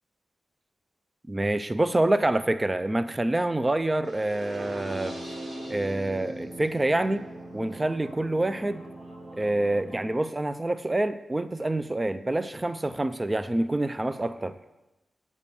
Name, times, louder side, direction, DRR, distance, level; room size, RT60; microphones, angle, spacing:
voice 1, 1.3-5.1 5.7-7.3 7.5-8.8 9.4-14.6, right 1 dB, 20° right, 13 dB, 0.4 m, -26 dB
sound 1, 4.1-10.0, right 1 dB, 75° right, 2.2 m, -40 dB
8.3 x 7.0 x 6.8 m, 1.0 s
wide cardioid pair, 110°, 0 cm